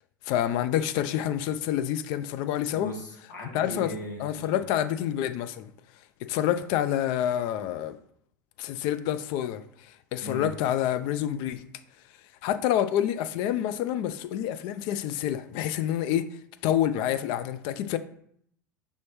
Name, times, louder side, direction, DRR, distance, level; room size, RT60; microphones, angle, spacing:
voice 1, 0.3-2.9 3.5-3.9 4.2-5.7 6.2-8.0 8.6-9.6 10.1-11.6 12.4-16.3 16.6-18.0, left 11 dB, 55° left, 0.4 m, -27 dB
voice 2, 2.7-4.5 10.2-10.5, equal, 75° left, 1.5 m, -38 dB
5.4 x 3.1 x 3.0 m
hypercardioid pair, 75°, 10 cm